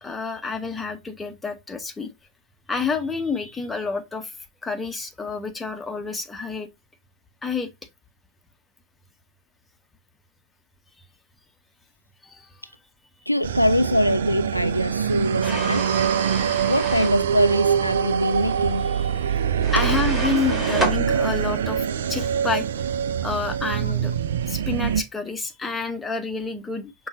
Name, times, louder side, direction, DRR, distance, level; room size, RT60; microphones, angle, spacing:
voice 1, 0.0-2.1 2.7-4.3 4.6-6.7 7.4-7.7 12.2-12.5 18.8-19.4 19.7-22.7 23.2-24.1 24.5-27.1, left 4 dB, 10° left, 0.8 m, -29 dB
voice 2, 13.3-15.9 16.6-18.9 19.5-19.9 20.3-20.4, equal, 90° left, 0.3 m, -23 dB
sound 1, 13.4-25.0, right 8 dB, 60° right, 0.4 m, -24 dB
sound 2, 15.4-17.2 19.6-21.0, equal, 5° right, 1.8 m, -30 dB
5.4 x 2.3 x 3.8 m
figure-of-eight pair, 90°, 0 cm